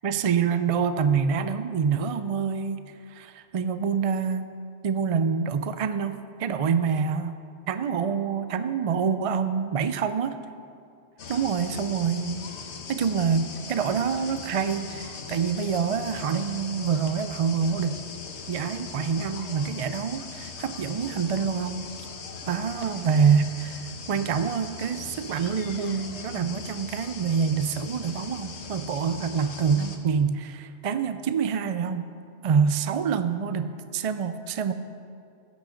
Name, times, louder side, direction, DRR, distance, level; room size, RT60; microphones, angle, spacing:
voice 1, 0.0-4.5 4.8-7.4 7.7-10.4 11.3-12.5 12.9-18.0 18.5-21.9 22.5-32.1 32.4-34.7, right 6 dB, 60° right, 10 dB, 0.3 m, -26 dB
sound 1, 11.2-30.0, left 5 dB, 85° left, 1.3 m, -40 dB
15.5 x 6.2 x 6.4 m, 2.4 s
omnidirectional pair, 1.1 m